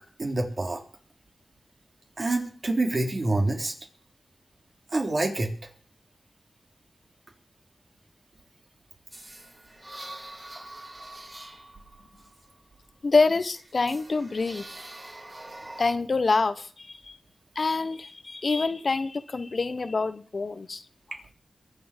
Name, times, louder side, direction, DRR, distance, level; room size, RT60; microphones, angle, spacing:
voice 1, 0.2-0.8 2.2-3.7 4.9-5.5, right 2 dB, 50° right, 3.6 m, -26 dB
sound 1, 9.1-13.0 13.5-15.9, right 1 dB, 30° right, 4.4 m, -44 dB
voice 2, 13.0-14.7 15.8-17.2 17.5-20.8, left 3 dB, 60° left, 1.0 m, -26 dB
22.5 x 7.8 x 5.2 m
cardioid pair, 60°, 0 cm